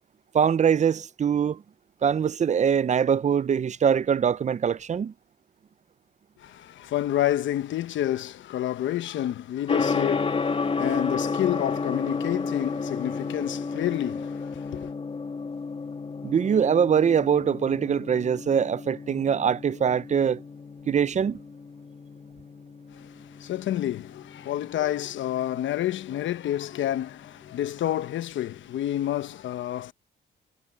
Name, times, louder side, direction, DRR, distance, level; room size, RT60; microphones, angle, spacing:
voice 1, 0.3-1.6 2.0-5.1 16.2-20.4 20.9-21.4, right 7 dB, 35° right, 0.6 m, -23 dB
voice 2, 6.4-14.9 22.9-29.9, left 12 dB, 70° left, 1.0 m, -29 dB
Gong, 9.7-28.6, left 4 dB, 30° left, 1.4 m, -33 dB
cardioid pair, 90°, 20 cm